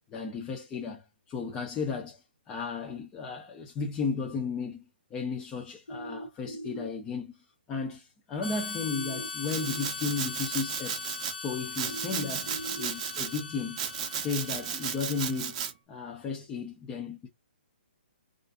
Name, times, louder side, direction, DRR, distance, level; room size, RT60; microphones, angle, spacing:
voice 1, 0.1-4.8 5.1-11.0 11.4-13.8 14.1-15.6 15.9-17.3, left 5 dB, 15° left, 0.3 m, -34 dB
sound 1, 5.9-6.9 8.9-9.9 11.9-12.9, right 1 dB, 90° left, 0.9 m, -40 dB
Harmonica, 8.4-15.7, left 4 dB, 65° left, 0.6 m, -40 dB
Domestic sounds home sounds, 9.5-11.3 11.7-13.4 13.8-15.7, right 8 dB, 35° right, 0.5 m, -35 dB
2.5 x 2.3 x 2.4 m
hypercardioid pair, 150°, 6 cm